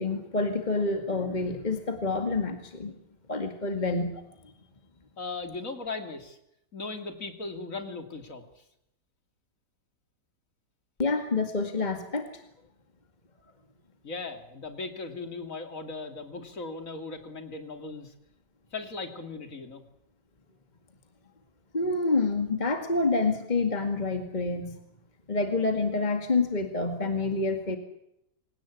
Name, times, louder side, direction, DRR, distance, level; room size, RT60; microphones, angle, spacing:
voice 1, 0.0-2.9 3.3-4.2 11.0-12.3 21.7-24.7 25.3-27.8, left 3 dB, 25° left, 5 dB, 2.2 m, -27 dB
voice 2, 5.2-6.4 6.7-8.4 14.0-18.1 18.7-19.8, left 3 dB, 50° left, 6 dB, 3.3 m, -38 dB
26.5 x 18.0 x 8.6 m, 0.81 s
omnidirectional pair, 1.8 m